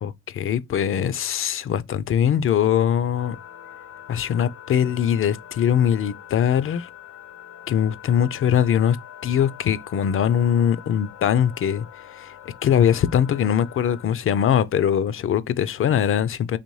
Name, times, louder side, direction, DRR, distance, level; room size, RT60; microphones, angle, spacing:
voice 1, 0.0-3.4 4.1-6.9 7.7-9.0 9.2-11.8 12.1-12.3 12.6-16.6, left 9 dB, 45° left, 0.4 m, -21 dB
sound 1, 3.2-14.1, left 10 dB, 85° left, 0.9 m, -43 dB
4.0 x 3.1 x 3.1 m
cardioid pair, 90°, 30 cm